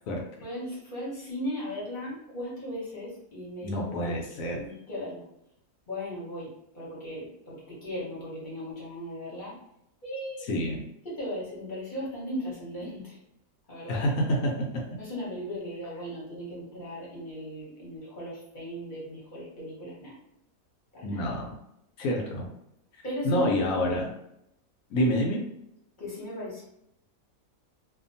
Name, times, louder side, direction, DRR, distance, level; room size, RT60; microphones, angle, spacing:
voice 1, 0.4-4.1 4.5-5.2 5.9-9.6 10.0-10.5 11.0-13.2 13.7-14.5 15.0-20.2 20.9-21.2 23.0-24.0 26.0-26.6, equal, 40° left, -6 dB, 0.8 m, -37 dB
voice 2, 3.6-4.6 10.5-10.8 13.9-15.0 21.0-21.5 22.0-22.5 23.2-24.1 24.9-25.4, equal, 70° left, 0 dB, 0.8 m, -27 dB
2.7 x 2.2 x 2.6 m, 0.79 s
omnidirectional pair, 1.7 m